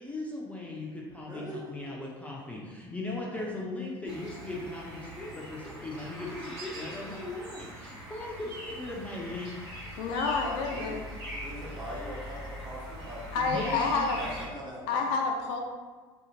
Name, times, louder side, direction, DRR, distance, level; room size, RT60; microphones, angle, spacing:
voice 1, 0.0-9.5 13.4-14.1, left 2 dB, 10° left, -4 dB, 0.5 m, -38 dB
voice 2, 1.3-1.7 3.3-3.6 10.4-11.0 11.4-13.2 14.2-15.1, equal, 30° right, -5 dB, 1.1 m, -41 dB
sound 1, 4.0-14.5, equal, 75° right, 1.1 m, -42 dB
voice 3, 10.0-11.0 13.3-14.2 14.9-15.6, left 4 dB, 65° left, 2 dB, 0.4 m, -28 dB
2.8 x 2.4 x 2.8 m, 1.4 s
hypercardioid pair, 70°, 14 cm